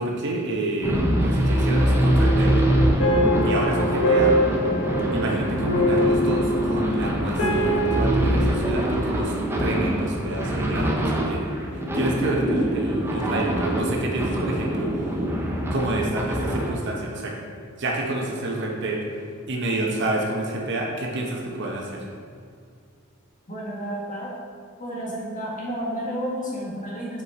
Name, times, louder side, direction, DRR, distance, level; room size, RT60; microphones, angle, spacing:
voice 1, 0.0-2.5 3.4-4.4 5.1-11.5 11.9-14.9 15.7-17.4 17.8-19.0 19.5-22.0, right 1 dB, 55° right, -1 dB, 0.9 m, -28 dB
sound 1, 0.8-16.9, equal, 10° right, 0.6 m, -24 dB
sound 2, 3.0-8.0, equal, 75° left, 1.2 m, -23 dB
voice 2, 23.5-24.3 24.8-27.2, equal, 40° left, -5 dB, 1.5 m, -31 dB
5.3 x 4.8 x 4.1 m, 2.1 s
head